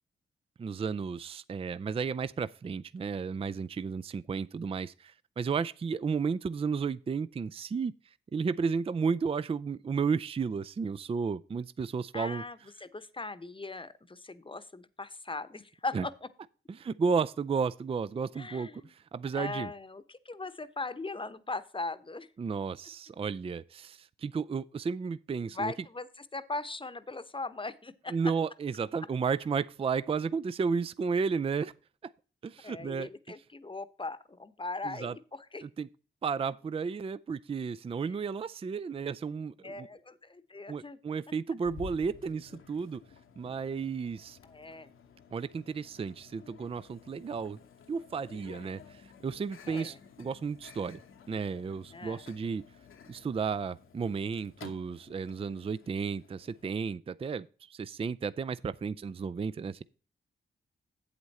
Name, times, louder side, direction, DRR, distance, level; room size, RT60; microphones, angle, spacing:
voice 1, 0.6-7.9 8.3-12.4 15.9-16.1 16.7-19.7 22.4-25.7 28.1-31.7 32.0-32.1 32.4-33.1 34.8-35.1 35.6-35.9 36.2-39.9 40.7-43.0 43.4-44.4 45.3-47.6 47.9-51.0 51.3-52.6 53.1-59.8, right 5 dB, 25° right, 0.4 m, -33 dB
voice 2, 12.1-16.3 18.3-18.9 19.3-22.3 25.5-28.3 32.6-35.7 38.0-38.2 39.6-41.0 44.4-44.9 49.7-50.0 51.9-52.2, left 3 dB, 25° left, 0.9 m, -39 dB
Microwave oven, 41.6-56.7, left 6 dB, 75° left, 1.2 m, -53 dB
8.1 x 8.0 x 4.1 m
cardioid pair, 55°, 21 cm